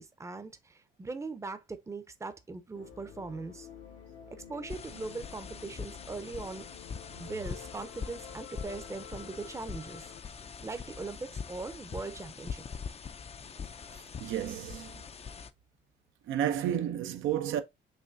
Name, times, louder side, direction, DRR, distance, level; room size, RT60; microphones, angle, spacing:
voice 1, 0.0-3.7 4.3-6.6 7.2-10.1 10.6-12.6, right 3 dB, 15° right, 0.6 m, -40 dB
sound 1, 2.7-10.2, left 8 dB, 75° left, 1.2 m, -50 dB
sound 2, 4.7-15.5, left 6 dB, 30° left, 0.5 m, -43 dB
voice 2, 13.9-14.9 16.3-17.6, right 10 dB, 85° right, 0.7 m, -32 dB
5.7 x 3.1 x 2.6 m
cardioid pair, 90°, 20 cm